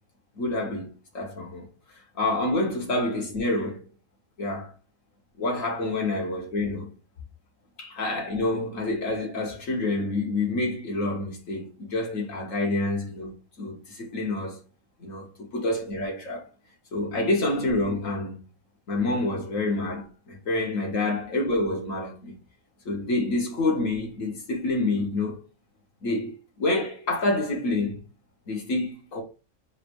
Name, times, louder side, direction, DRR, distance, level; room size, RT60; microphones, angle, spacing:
voice 1, 0.4-0.9 1.1-1.7 2.2-3.8 4.4-4.7 5.4-6.9 7.8-13.3 13.6-14.6 15.0-16.4 16.9-18.4 18.9-22.3 22.9-25.4 26.0-28.0 28.5-29.2, left 2 dB, 75° left, 1.8 m, -27 dB
4.1 x 2.7 x 4.6 m
omnidirectional pair, 1.4 m